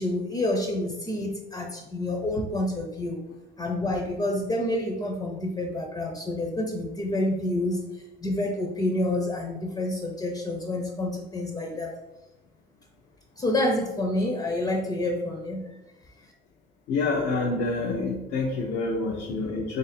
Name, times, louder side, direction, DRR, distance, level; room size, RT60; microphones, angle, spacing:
voice 1, 0.0-3.2 3.6-11.9 13.4-15.7, left 1 dB, 25° left, 1 dB, 0.6 m, -28 dB
voice 2, 16.9-19.8, left 3 dB, 85° left, -2 dB, 0.6 m, -27 dB
3.3 x 2.6 x 4.2 m, 0.98 s
cardioid pair, 110°, 17 cm